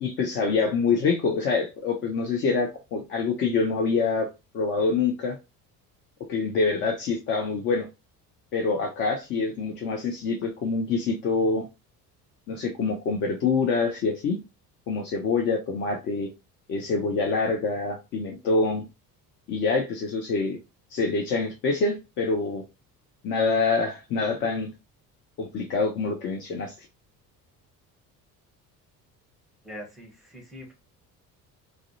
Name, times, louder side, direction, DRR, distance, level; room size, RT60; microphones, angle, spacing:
voice 1, 0.0-4.3 4.5-5.4 6.3-7.9 8.5-11.6 12.5-14.4 14.9-16.3 16.7-18.8 19.5-20.6 20.9-22.6 23.2-24.7 25.4-26.7, left 4 dB, 25° left, 1 dB, 0.3 m, -26 dB
voice 2, 29.6-30.7, equal, ahead, -1 dB, 0.8 m, -43 dB
2.3 x 2.0 x 2.5 m, 0.26 s
figure-of-eight pair, 55°, 48 cm